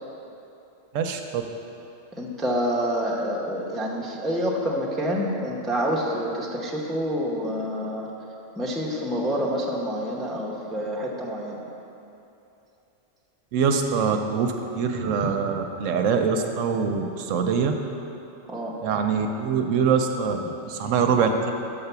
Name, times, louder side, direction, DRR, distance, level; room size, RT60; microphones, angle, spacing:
voice 1, 0.9-1.4 13.5-17.7 18.8-20.4 20.7-21.5, right 6 dB, 75° right, 5 dB, 0.9 m, -24 dB
voice 2, 2.2-8.1 8.6-11.6 18.5-18.7, equal, ahead, -4 dB, 0.6 m, -27 dB
5.8 x 5.7 x 6.7 m, 2.9 s
omnidirectional pair, 1.4 m